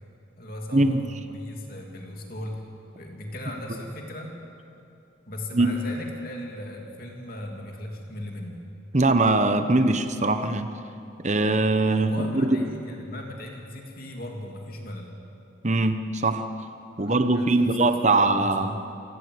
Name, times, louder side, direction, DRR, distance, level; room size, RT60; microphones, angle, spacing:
voice 1, 0.3-2.6 3.0-4.3 5.3-8.6 12.1-15.1 16.9-18.5, left 1 dB, 45° left, 1 dB, 2.9 m, -38 dB
voice 2, 8.9-10.7 11.2-12.6 15.6-16.4 17.0-18.8, right 2 dB, 35° right, 8 dB, 1.0 m, -22 dB
28.0 x 17.5 x 8.1 m, 2.7 s
head